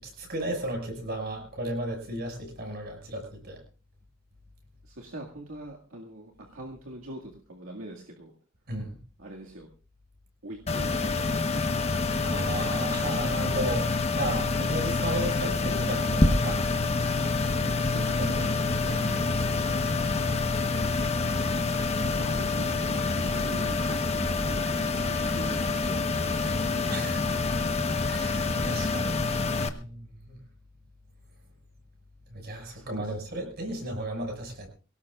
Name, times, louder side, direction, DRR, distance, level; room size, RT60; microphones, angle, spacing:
voice 1, 0.0-3.6 8.7-9.0 12.2-16.6 18.2-20.4 21.7-22.2 26.9-27.6 28.1-29.3 29.7-30.4 32.3-34.7, right 1 dB, 50° right, 3 dB, 6.1 m, -35 dB
voice 2, 4.8-8.3 9.2-9.7 10.4-11.5 17.8-18.6 22.1-26.6 29.7-29.8 32.7-33.2, right 1 dB, 80° right, -1 dB, 2.1 m, -43 dB
sound 1, 10.7-29.7, left 3 dB, 30° left, 1.1 m, -27 dB
23.5 x 18.0 x 2.5 m, 0.34 s
head